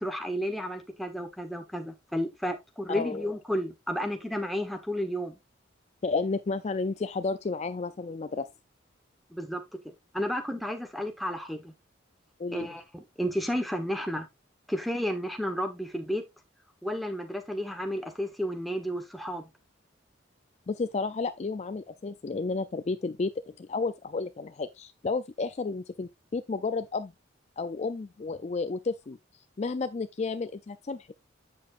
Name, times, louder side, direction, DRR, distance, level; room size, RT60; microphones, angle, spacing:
voice 1, 0.0-5.4 9.3-11.7 12.5-14.3 14.7-16.2 16.8-19.4, equal, ahead, 1.1 m, -32 dB
voice 2, 2.9-3.3 6.0-8.5 12.4-12.7 20.7-27.1 27.6-29.2 29.6-31.1, left 4 dB, 35° left, 0.4 m, -32 dB
8.4 x 7.0 x 2.5 m
head